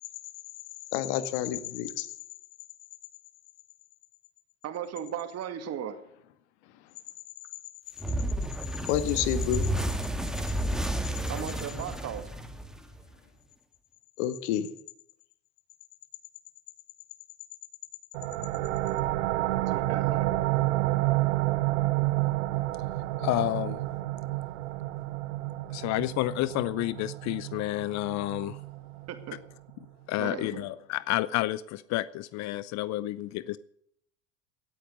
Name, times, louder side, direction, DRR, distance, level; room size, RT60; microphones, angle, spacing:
voice 1, 0.9-2.1 8.9-9.7 14.2-14.7, left 11 dB, 70° left, 12 dB, 1.6 m, -29 dB
voice 2, 4.6-6.0 11.3-12.3 19.5-20.3 29.1-29.4 30.2-30.8, right 9 dB, 45° right, 8 dB, 2.3 m, -37 dB
sound 1, 8.0-13.1, right 1 dB, ahead, 1.7 m, -31 dB
sound 2, 18.1-29.5, right 18 dB, 80° right, 0.9 m, -30 dB
voice 3, 23.2-23.8 25.7-28.6 30.1-33.6, left 16 dB, 50° left, 18 dB, 0.6 m, -30 dB
17.5 x 8.7 x 6.8 m, 0.71 s
hypercardioid pair, 85°, 36 cm